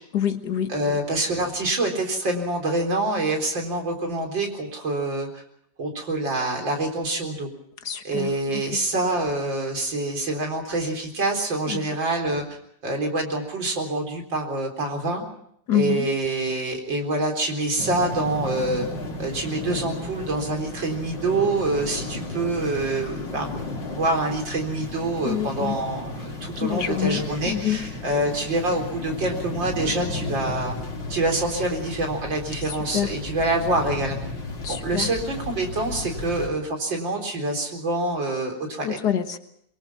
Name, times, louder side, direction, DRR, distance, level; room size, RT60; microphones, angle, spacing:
voice 1, 0.1-0.7 7.9-8.3 11.7-11.8 15.7-16.1 25.3-25.8 26.6-27.8 32.9-33.1 34.6-35.1 38.8-39.4, left 10 dB, 65° left, 8 dB, 1.9 m, -26 dB
voice 2, 0.7-5.4 5.8-7.5 8.0-12.4 12.8-15.2 15.7-18.9 19.2-23.5 23.9-30.8 31.1-34.3 34.7-39.0, right 2 dB, 80° right, 3 dB, 4.7 m, -26 dB
sound 1, 17.8-36.5, left 2 dB, 80° left, 4.1 m, -34 dB
24.0 x 23.0 x 6.0 m, 0.70 s
omnidirectional pair, 2.0 m